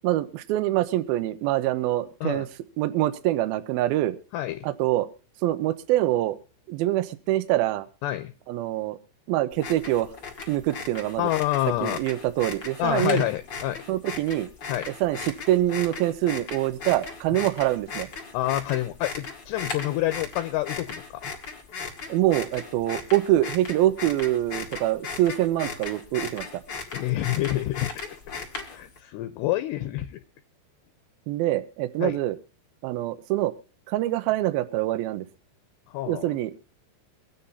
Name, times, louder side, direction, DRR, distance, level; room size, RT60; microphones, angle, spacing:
voice 1, 0.0-2.5 2.8-4.2 4.6-5.1 5.4-6.4 6.7-7.9 8.5-9.0 9.3-10.1 10.5-11.3 11.8-13.2 13.9-14.5 15.0-18.1 22.1-26.5 31.3-32.4 32.8-33.5 33.9-35.3 36.1-36.5, right 14 dB, 85° right, 12 dB, 2.2 m, -25 dB
sound 1, 9.5-29.0, left 4 dB, 45° left, 1.5 m, -37 dB
voice 2, 11.2-12.0 12.8-13.8 14.7-14.9 18.3-21.3 26.9-27.9 28.7-30.2 32.0-32.2 35.9-36.3, left 15 dB, 80° left, 9 dB, 2.7 m, -27 dB
24.0 x 9.4 x 2.7 m, 0.35 s
omnidirectional pair, 5.3 m